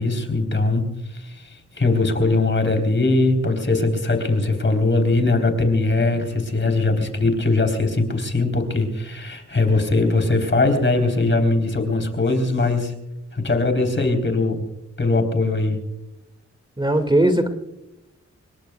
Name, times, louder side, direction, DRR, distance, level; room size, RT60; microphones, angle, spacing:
voice 1, 0.0-12.9 13.3-14.6 15.0-15.8, left 2 dB, 40° left, 5 dB, 3.8 m, -21 dB
voice 2, 16.8-17.5, right 1 dB, 15° right, 7 dB, 2.1 m, -18 dB
26.0 x 21.5 x 2.3 m, 0.87 s
cardioid pair, 70°, 29 cm